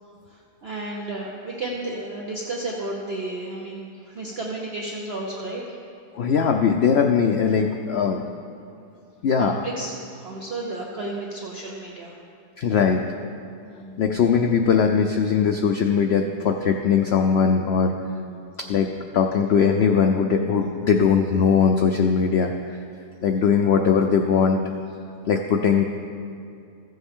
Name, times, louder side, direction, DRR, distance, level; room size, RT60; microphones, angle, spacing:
voice 1, 0.3-5.8 9.4-12.2 13.6-14.2 18.0-18.4 25.6-25.7, right 2 dB, 45° right, -2 dB, 0.9 m, -33 dB
voice 2, 6.2-8.3 9.2-9.6 12.6-13.0 14.0-17.9 18.7-22.8 23.2-24.6 25.3-25.8, left 6 dB, 85° left, 4 dB, 0.5 m, -20 dB
15.0 x 7.7 x 3.6 m, 2.4 s
omnidirectional pair, 1.7 m